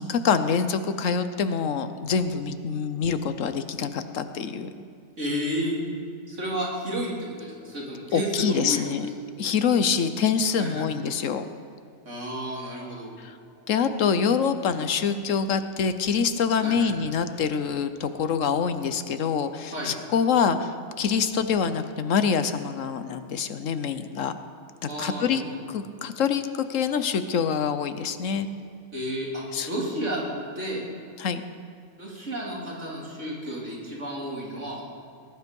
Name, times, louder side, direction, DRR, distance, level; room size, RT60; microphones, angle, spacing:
voice 1, 0.0-4.7 8.1-9.1 9.4-11.5 13.2-13.4 13.7-24.3 24.8-25.4 25.7-28.5 29.5-29.7 31.2-31.4, left 6 dB, 70° left, 10 dB, 1.2 m, -25 dB
voice 2, 5.2-5.8 6.3-7.1 7.4-8.8 10.6-10.9 12.1-13.1 16.6-16.9 19.7-19.9 24.9-25.6 28.9-30.2 30.6-30.8 32.0-34.8, equal, 60° right, -4 dB, 3.6 m, -31 dB
19.5 x 11.0 x 5.4 m, 2.4 s
omnidirectional pair, 1.4 m